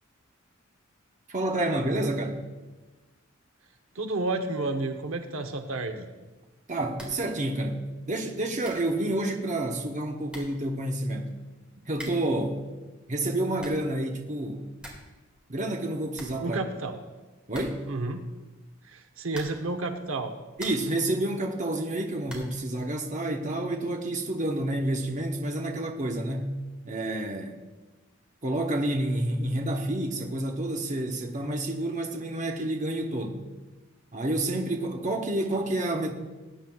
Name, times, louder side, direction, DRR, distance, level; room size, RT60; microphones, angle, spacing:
voice 1, 1.3-2.4 6.7-11.3 11.8-12.6 13.1-14.6 15.5-16.6 17.5-17.9 20.6-26.6 26.8-27.6 28.4-33.5 34.1-36.1, right 1 dB, 40° right, 1.0 m, -29 dB
voice 2, 3.9-6.1 16.4-16.9 17.9-18.2 18.9-20.3, right 2 dB, 80° right, 0.8 m, -31 dB
sound 1, 6.9-7.3 7.6-7.7 8.3-8.4 8.6-8.9 9.9-10.0 10.3-10.6 11.9-12.4 13.3-13.9 14.3-14.4 14.6-15.2 15.4-15.5 15.8-15.9 16.1-16.9 17.5-18.0 19.3-19.8 20.2-21.0 22.2-22.6, equal, 5° right, 2.0 m, -45 dB
19.0 x 9.1 x 2.4 m
head